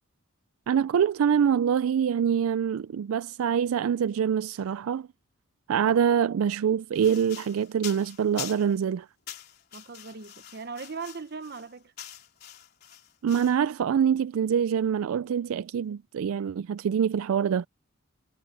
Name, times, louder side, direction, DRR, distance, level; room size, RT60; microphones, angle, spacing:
voice 1, 0.7-5.1 5.7-9.1 13.2-17.7, right 8 dB, 85° right, 0.3 m, -25 dB
sound 1, 6.9-8.8 9.3-13.6, left 11 dB, 50° left, 3.8 m, -44 dB
voice 2, 9.7-11.9, right 4 dB, 50° right, 0.9 m, -39 dB
head